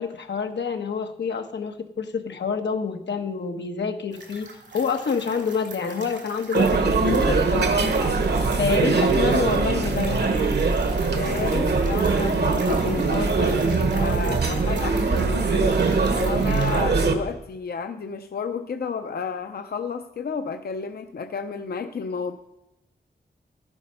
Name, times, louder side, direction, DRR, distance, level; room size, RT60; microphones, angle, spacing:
voice 1, 0.0-7.7 8.6-10.3, left 5 dB, 90° left, 6 dB, 1.1 m, -27 dB
sound 1, 4.1-16.8, right 3 dB, 90° right, 2.4 m, -41 dB
sound 2, 6.5-17.1, right 4 dB, 70° right, 1.2 m, -22 dB
voice 2, 8.0-8.3 11.1-15.8 16.1-22.4, left 5 dB, 60° left, 7 dB, 0.6 m, -32 dB
13.0 x 8.2 x 5.4 m, 0.86 s
wide cardioid pair, 140°, 18 cm